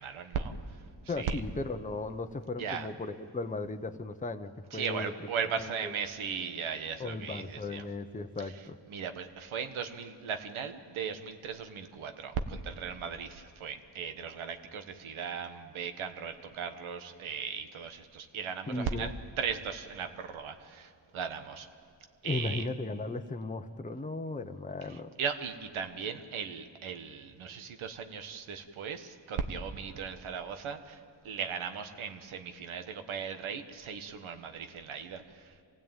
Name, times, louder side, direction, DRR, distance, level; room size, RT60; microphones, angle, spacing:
voice 1, 0.0-1.4 2.6-2.9 4.7-7.9 8.4-8.6 8.9-21.7 22.2-22.6 24.8-35.5, right 6 dB, 90° right, 7 dB, 1.6 m, -37 dB
voice 2, 1.1-5.1 5.8-5.9 7.0-8.8 18.7-19.1 22.2-25.1, left 2 dB, 15° left, 7 dB, 1.0 m, -36 dB
25.5 x 16.5 x 9.1 m, 2.2 s
cardioid pair, 70°, 47 cm